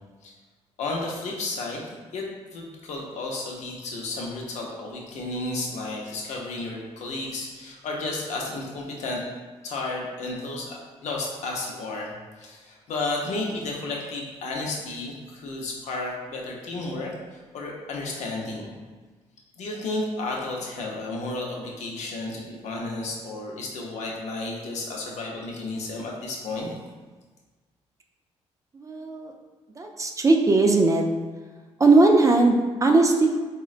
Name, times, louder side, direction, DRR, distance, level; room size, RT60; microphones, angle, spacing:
voice 1, 0.8-2.3 2.5-9.2 9.6-12.1 12.4-18.7 19.6-26.7, left 2 dB, 70° left, -1 dB, 0.6 m, -32 dB
voice 2, 28.7-29.3 29.8-31.0 31.8-33.3, right 3 dB, 25° right, 2 dB, 0.4 m, -19 dB
3.7 x 2.1 x 2.4 m, 1.4 s
supercardioid pair, 65°, 12 cm